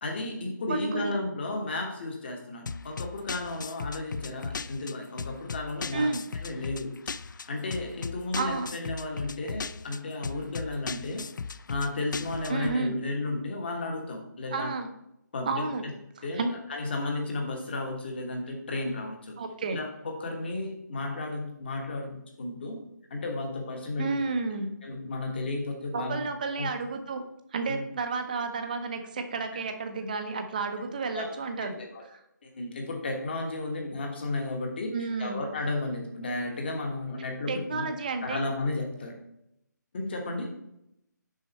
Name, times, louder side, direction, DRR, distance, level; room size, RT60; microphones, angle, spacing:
voice 1, 0.0-11.3 11.7-14.7 15.3-15.7 16.2-16.4 16.7-19.4 19.7-22.8 23.1-24.2 24.8-26.2 26.6-26.7 27.7-27.8 29.5-29.6 31.1-31.3 31.8-32.0 32.4-37.9 38.2-39.2 39.9-40.5, left 2 dB, 35° left, 2 dB, 1.3 m, -33 dB
voice 2, 0.7-1.1 5.9-6.2 8.3-8.7 12.5-13.0 14.5-14.9 15.5-15.8 16.2-16.5 19.4-19.8 24.0-24.7 25.9-27.2 27.5-31.8 32.1-32.2 34.9-35.4 37.5-38.4, right 4 dB, 25° right, 7 dB, 0.7 m, -31 dB
sound 1, 2.7-12.8, left 5 dB, 80° left, 0.4 m, -38 dB
6.4 x 5.5 x 4.2 m, 0.80 s
figure-of-eight pair, 170°, 10 cm